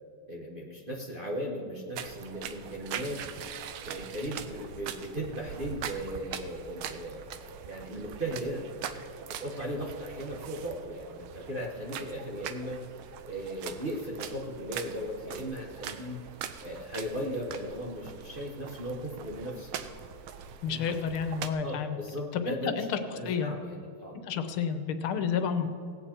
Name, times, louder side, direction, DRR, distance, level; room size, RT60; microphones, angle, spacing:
voice 1, 0.3-3.4 3.8-8.6 9.3-12.8 13.2-16.2 16.6-19.7 20.7-20.8 21.6-22.8 23.1-24.1, equal, 35° right, -3 dB, 1.0 m, -37 dB
sound 1, 1.9-21.5, right 9 dB, 80° right, 1.5 m, -42 dB
voice 2, 20.6-22.0 22.3-23.0 23.2-23.5 24.2-25.7, left 7 dB, 80° left, 9 dB, 1.6 m, -30 dB
18.0 x 8.4 x 4.3 m, 2.7 s
omnidirectional pair, 2.3 m